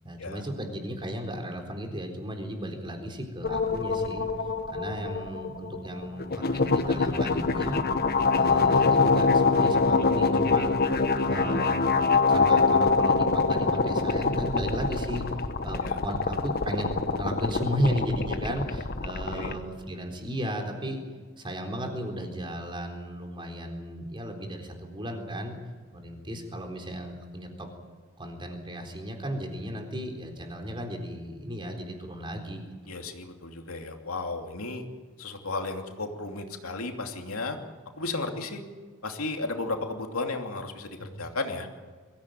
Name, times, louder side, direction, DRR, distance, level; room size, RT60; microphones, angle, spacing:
voice 1, 0.0-4.3 4.7-7.8 8.3-10.7 11.2-15.3 15.6-21.0 21.4-25.6 25.9-27.7 28.2-32.7 41.0-41.2, equal, 25° right, 3 dB, 3.9 m, -34 dB
sound 1, 3.4-19.5, left 4 dB, 45° left, 1.2 m, -25 dB
voice 2, 32.9-34.8 35.2-37.6 38.0-38.6 39.0-41.7, left 3 dB, 85° left, 4 dB, 2.8 m, -34 dB
23.0 x 15.5 x 9.4 m, 1.5 s
head